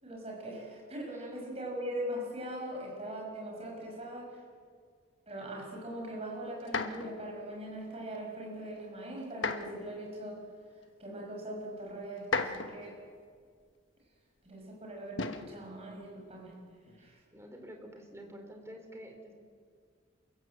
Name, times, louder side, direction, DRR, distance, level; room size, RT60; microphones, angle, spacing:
voice 1, 0.0-4.4 5.3-10.4 11.0-12.9 14.4-16.6 17.0-17.2, right 1 dB, 30° right, -1 dB, 6.3 m, -41 dB
sound 1, 6.6-7.2 9.3-9.8 10.8-10.9 12.2-12.9 15.2-15.5 16.8-17.1, left 4 dB, 75° left, 1.3 m, -34 dB
voice 2, 17.3-19.3, equal, 15° right, 4 dB, 3.1 m, -48 dB
28.5 x 16.0 x 8.1 m, 2.1 s
head